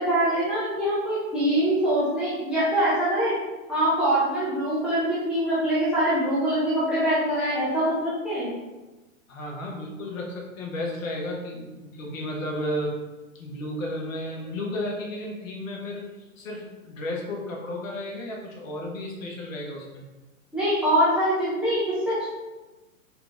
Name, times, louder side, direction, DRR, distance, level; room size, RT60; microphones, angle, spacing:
voice 1, 0.0-3.3 3.7-8.5 20.5-22.3, right 1 dB, ahead, -11 dB, 0.5 m, -24 dB
voice 2, 9.3-13.0 13.3-16.1 16.4-20.0, left 1 dB, 70° left, -1 dB, 1.3 m, -33 dB
4.5 x 2.6 x 3.4 m, 1.2 s
hypercardioid pair, 135°, 42 cm